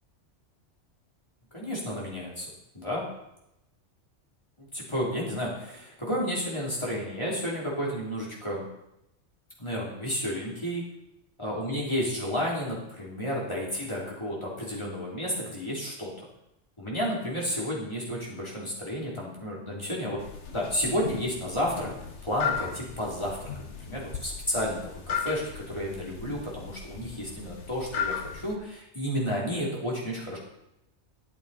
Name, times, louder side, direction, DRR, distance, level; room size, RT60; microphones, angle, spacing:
voice 1, 1.5-2.5 2.7-3.0 4.6-8.7 9.6-10.8 11.4-16.1 16.8-20.2 20.5-21.9 22.2-23.5 23.8-24.8 25.1-30.4, equal, 25° left, -5 dB, 3.0 m, -31 dB
sound 1, 20.2-28.5, left 6 dB, 70° left, 1.3 m, -36 dB
12.5 x 8.4 x 4.1 m, 0.83 s
omnidirectional pair, 1.2 m